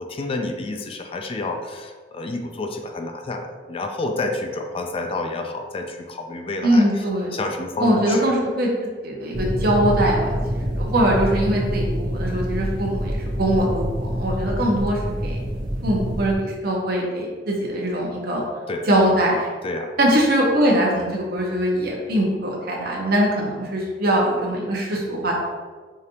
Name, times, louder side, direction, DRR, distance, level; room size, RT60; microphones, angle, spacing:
voice 1, 0.0-7.0 7.3-8.2 18.7-18.9 19.6-19.9, left 2 dB, 30° left, 5 dB, 0.3 m, -29 dB
voice 2, 6.6-7.3 7.8-8.7 9.0-15.4 15.8-18.4 18.9-19.5 20.0-25.3, right 1 dB, 60° right, -2 dB, 0.8 m, -22 dB
sound 1, 9.3-16.4, equal, 25° right, 0.9 m, -26 dB
4.9 x 2.6 x 2.8 m, 1.5 s
head